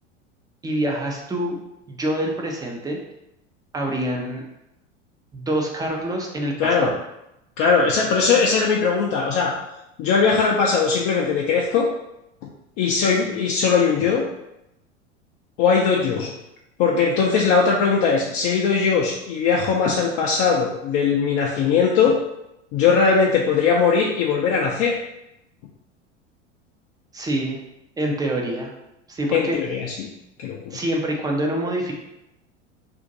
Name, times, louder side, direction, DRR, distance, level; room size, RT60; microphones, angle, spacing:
voice 1, 0.6-1.6 1.9-3.0 3.7-4.4 5.3-6.9 27.1-27.6 28.0-28.7 29.1-29.6 30.7-31.9, right 1 dB, 10° right, 0 dB, 0.5 m, -26 dB
voice 2, 7.6-9.5 10.0-11.9 12.8-14.2 15.6-16.3 16.8-22.2 22.7-25.0 29.3-29.9 30.4-30.6, left 5 dB, 40° left, -2 dB, 0.5 m, -19 dB
2.6 x 2.5 x 3.9 m, 0.87 s
figure-of-eight pair, 85°, 36 cm